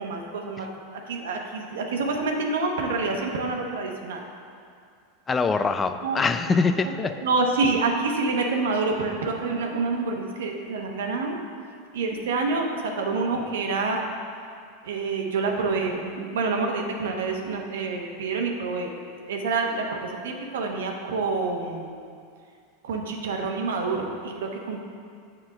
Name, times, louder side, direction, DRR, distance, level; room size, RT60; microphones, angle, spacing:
voice 1, 0.0-4.2 6.0-6.2 6.8-6.9 7.2-11.4 11.9-14.0 14.8-18.9 19.3-21.9 22.8-24.8, right 3 dB, 80° right, 2 dB, 1.0 m, -27 dB
voice 2, 5.3-7.1, left 4 dB, 20° left, 9 dB, 0.4 m, -23 dB
7.6 x 4.3 x 6.5 m, 2.3 s
hypercardioid pair, 100°, 0 cm